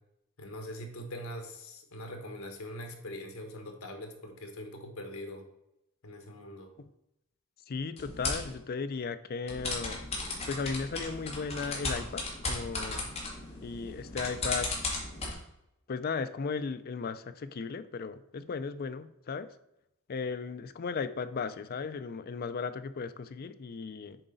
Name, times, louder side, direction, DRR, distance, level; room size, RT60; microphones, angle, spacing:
voice 1, 0.4-5.4 6.0-6.7, left 1 dB, 75° left, 4 dB, 1.4 m, -42 dB
voice 2, 7.7-10.1 10.5-13.0 13.6-14.7 15.9-19.5 20.1-24.2, left 5 dB, 45° left, 12 dB, 0.4 m, -36 dB
sound 1, 8.0-8.5 9.5-15.3, left 2 dB, 30° left, 2.0 m, -36 dB
7.7 x 4.9 x 3.9 m, 0.84 s
head